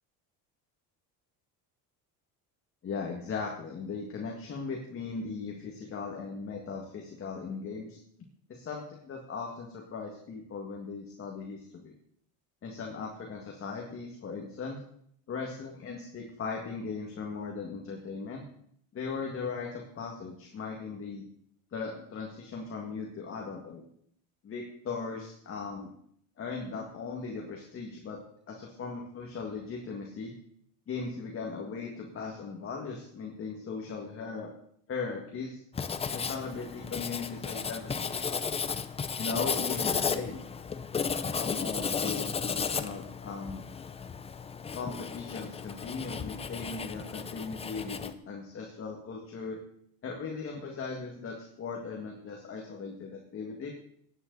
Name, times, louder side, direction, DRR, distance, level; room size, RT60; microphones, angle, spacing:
voice 1, 2.8-8.0 8.5-11.9 12.6-14.8 15.3-18.4 18.9-21.2 21.7-23.8 24.4-25.9 26.4-28.2 28.5-30.3 30.9-34.5 34.9-35.6 36.1-38.1 39.2-40.4 41.1-43.6 44.7-49.6 50.0-53.7, left 4 dB, 35° left, 0 dB, 2.0 m, -38 dB
Writing, 35.7-48.1, left 6 dB, 15° left, 0.5 m, -34 dB
17.5 x 9.5 x 4.0 m, 0.66 s
cardioid pair, 150°, 38 cm